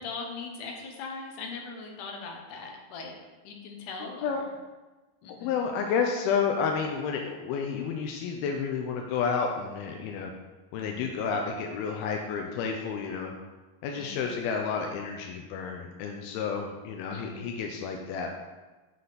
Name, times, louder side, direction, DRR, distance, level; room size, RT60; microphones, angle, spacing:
voice 1, 0.0-3.2 3.4-4.4 5.2-5.6 10.8-11.1 13.9-14.3 17.1-17.5, left 4 dB, 65° left, 1 dB, 2.4 m, -40 dB
voice 2, 4.0-4.4 5.3-10.3 10.7-13.3 13.8-18.3, left 6 dB, 85° left, 2 dB, 2.5 m, -30 dB
7.6 x 6.7 x 4.0 m, 1.2 s
omnidirectional pair, 4.3 m